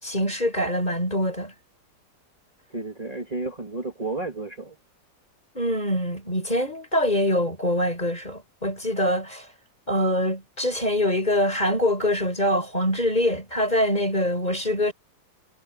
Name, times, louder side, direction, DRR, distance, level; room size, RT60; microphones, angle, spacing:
voice 1, 0.0-1.5 5.5-9.5 9.9-14.9, left 1 dB, 25° left, 5.4 m, -24 dB
voice 2, 2.7-4.8, right 2 dB, 20° right, 2.6 m, -32 dB
omnidirectional pair, 1.9 m